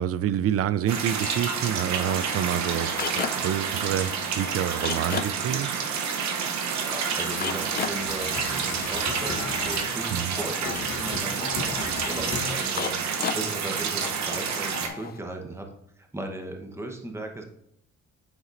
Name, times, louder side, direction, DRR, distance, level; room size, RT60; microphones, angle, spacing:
voice 1, 0.0-5.7 10.1-10.3, right 10 dB, 50° right, 15 dB, 0.4 m, -28 dB
sound 1, 0.9-14.9, right 6 dB, 65° right, 0.8 m, -29 dB
sound 2, 1.2-3.6 3.9-15.2, left 7 dB, 35° left, 0.4 m, -37 dB
voice 2, 6.8-17.4, right 1 dB, 10° right, 3 dB, 1.0 m, -37 dB
sound 3, 7.3-12.9, left 4 dB, 60° left, 1.3 m, -37 dB
9.5 x 4.1 x 2.5 m, 0.75 s
cardioid pair, 90°, 30 cm